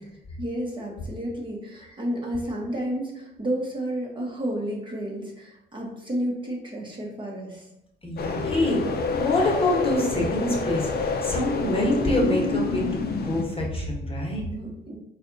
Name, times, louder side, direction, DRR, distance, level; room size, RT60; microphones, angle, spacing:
voice 1, 0.4-7.7 14.4-15.0, right 1 dB, 25° right, -2 dB, 1.0 m, -31 dB
voice 2, 8.0-12.9 13.2-14.4, left 1 dB, 30° left, -2 dB, 1.2 m, -25 dB
sound 1, 8.2-13.4, left 4 dB, 50° left, 0.6 m, -28 dB
4.1 x 2.5 x 3.9 m, 0.85 s
cardioid pair, 90°, 20 cm